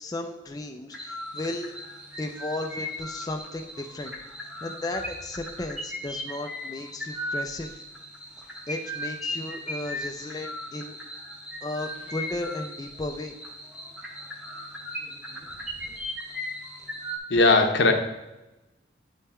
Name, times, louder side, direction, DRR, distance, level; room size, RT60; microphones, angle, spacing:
voice 1, 0.0-1.7 2.2-4.1 4.6-7.8 8.7-11.0 11.6-13.3, left 2 dB, 20° left, 3 dB, 0.4 m, -35 dB
sound 1, 0.9-17.2, left 1 dB, 5° right, 0.9 m, -37 dB
voice 2, 17.3-17.9, left 3 dB, 80° left, 4 dB, 0.9 m, -18 dB
8.0 x 3.6 x 4.2 m, 0.99 s
head